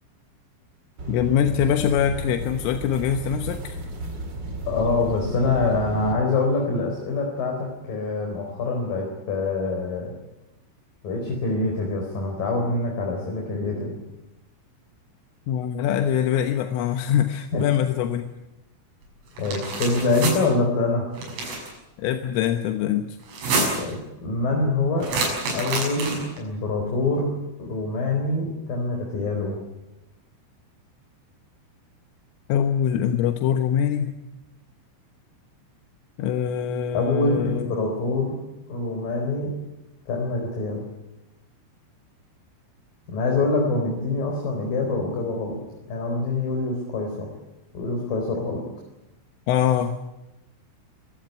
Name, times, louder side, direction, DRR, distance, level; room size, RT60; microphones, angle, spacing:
sound 1, 1.0-6.1, right 2 dB, 25° right, 2.8 m, -33 dB
voice 1, 1.1-3.8 15.5-18.2 22.0-23.2 32.5-34.2 36.2-37.7 49.5-50.0, left 9 dB, 85° left, 7 dB, 3.7 m, -23 dB
voice 2, 4.7-10.1 11.0-14.0 17.5-17.7 19.4-21.1 23.8-25.1 25.5-27.3 27.6-29.6 36.9-38.3 38.7-39.5 40.1-40.8 43.1-45.6 45.9-47.3 47.7-48.6, left 3 dB, 45° left, 1 dB, 5.7 m, -25 dB
sound 2, 19.4-20.4 21.2-21.7 23.2-23.9 25.0-26.4, right 3 dB, 80° right, 9.1 m, -27 dB
26.0 x 17.0 x 9.6 m, 0.95 s
omnidirectional pair, 5.7 m